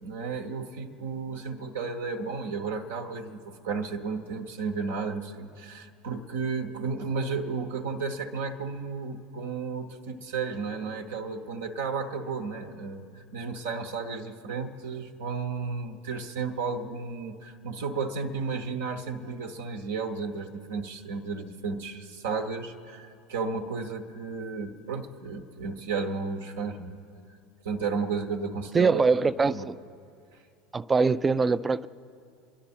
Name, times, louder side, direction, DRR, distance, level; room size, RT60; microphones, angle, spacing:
voice 1, 0.0-27.0 27.6-29.0 29.5-29.7 30.3-30.4, right 4 dB, 70° right, 1.0 m, -33 dB
voice 2, 28.7-29.8 30.7-31.9, right 4 dB, 20° right, 0.4 m, -23 dB
26.5 x 11.5 x 4.4 m
figure-of-eight pair, 75°, 0 cm